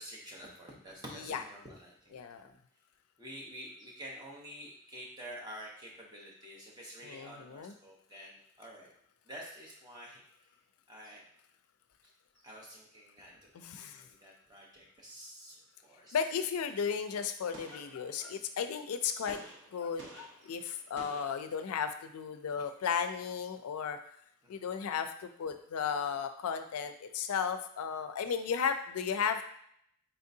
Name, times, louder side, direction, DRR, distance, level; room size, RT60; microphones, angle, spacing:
voice 1, 0.0-2.2 3.2-8.9 9.2-10.5 10.9-11.2 12.0-16.2 20.4-20.6 24.4-24.6, equal, 20° right, -3 dB, 1.0 m, -49 dB
voice 2, 2.1-2.5 7.0-7.7 13.5-14.0 16.1-19.4 19.7-24.0 24.5-29.4, left 7 dB, 85° left, 8 dB, 0.4 m, -34 dB
Gunshot gunfire, 17.5-18.6 19.3-22.0, right 1 dB, 60° right, 0.9 m, -52 dB
4.3 x 3.6 x 2.7 m, 0.68 s
head